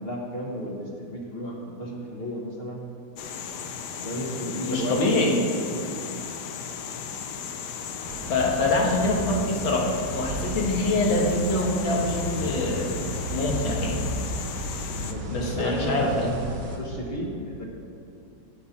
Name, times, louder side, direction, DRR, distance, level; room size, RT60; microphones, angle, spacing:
voice 1, 0.0-2.9 4.0-5.2 15.0-16.4 16.8-17.6, equal, 35° left, -2 dB, 1.4 m, -33 dB
sound 1, 3.2-15.1, left 7 dB, 70° left, 1.2 m, -36 dB
voice 2, 4.6-5.3 8.3-12.9 13.3-14.0 15.3-16.3, left 2 dB, 85° left, -1 dB, 2.3 m, -24 dB
sound 2, 8.0-16.8, right 1 dB, 80° right, 2.3 m, -34 dB
17.0 x 5.9 x 4.2 m, 2.6 s
omnidirectional pair, 2.1 m